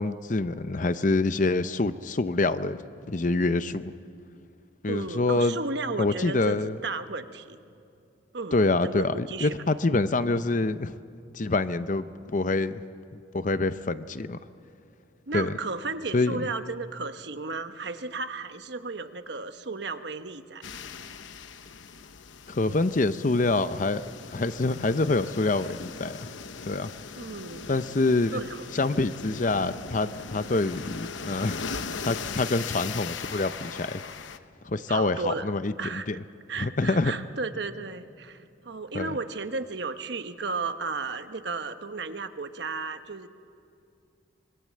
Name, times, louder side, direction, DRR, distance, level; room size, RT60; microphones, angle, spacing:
voice 1, 0.0-2.8 3.1-3.9 4.8-5.6 6.0-6.8 8.5-10.9 11.3-12.8 13.3-14.4 15.3-15.5 16.1-16.5 22.5-24.0 24.3-26.2 26.7-26.9 27.7-28.4 28.7-31.6 32.0-34.0 34.6-36.2 36.6-37.1 38.9-39.1, left 2 dB, 40° left, 12 dB, 0.6 m, -26 dB
voice 2, 4.9-7.6 8.3-9.5 15.3-20.6 27.2-27.7 28.3-28.7 34.9-35.5 35.8-36.1 36.5-43.3, right 3 dB, 60° right, 9 dB, 1.0 m, -34 dB
sound 1, 20.6-34.4, left 5 dB, 75° left, 0.9 m, -39 dB
26.0 x 22.5 x 7.6 m, 2.5 s
head